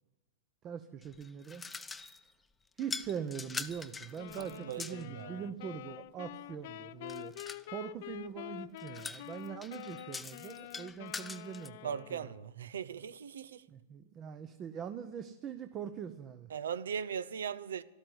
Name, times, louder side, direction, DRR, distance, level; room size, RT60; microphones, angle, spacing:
voice 1, 0.6-1.7 2.8-7.3 7.7-12.2 13.7-16.5, right 8 dB, 30° right, 0.8 m, -42 dB
sound 1, 1.0-2.3 2.8-5.1 7.1-7.7 8.8-11.7, left 4 dB, 10° left, 0.6 m, -44 dB
sound 2, 4.2-12.5, left 15 dB, 60° left, 0.5 m, -47 dB
voice 2, 4.4-5.5 11.8-13.6 16.5-17.8, right 7 dB, 85° right, 0.7 m, -39 dB
12.5 x 12.5 x 7.9 m
hypercardioid pair, 125°, 0 cm